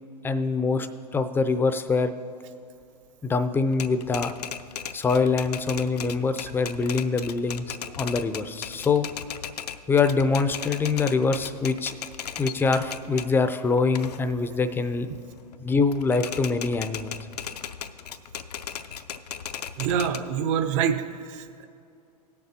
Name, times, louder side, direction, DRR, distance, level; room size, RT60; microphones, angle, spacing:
voice 1, 0.2-0.9 1.1-2.1 3.2-4.3 4.9-9.1 9.9-11.9 12.4-15.1 15.6-17.2, left 4 dB, 10° left, 10 dB, 0.5 m, -24 dB
Typewriter, 3.7-13.3 13.8-15.6 15.9-20.2, left 8 dB, 70° left, 0.5 m, -37 dB
voice 2, 19.8-21.0 21.3-21.7, right 8 dB, 50° right, 9 dB, 0.8 m, -25 dB
18.5 x 6.9 x 2.8 m, 2.5 s
figure-of-eight pair, 100°, 21 cm